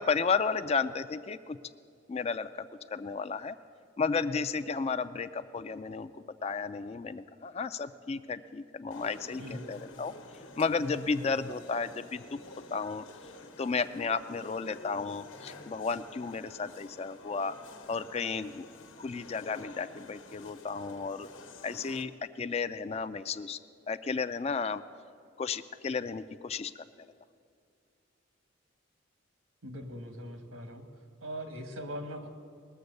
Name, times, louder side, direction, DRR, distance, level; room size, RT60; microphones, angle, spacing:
voice 1, 0.0-1.6 2.1-2.7 2.9-3.6 4.0-6.1 6.4-10.1 10.6-12.4 12.7-13.0 13.6-17.5 17.9-18.7 19.0-21.3 21.6-22.1 22.4-23.6 23.9-24.8 25.4-27.1, left 5 dB, 30° left, 13 dB, 0.3 m, -33 dB
sound 1, 8.9-22.0, left 2 dB, 70° left, 1.2 m, -50 dB
voice 2, 29.6-30.8 31.2-32.3, equal, 85° right, 6 dB, 1.5 m, -40 dB
20.5 x 7.0 x 6.6 m, 2.4 s
head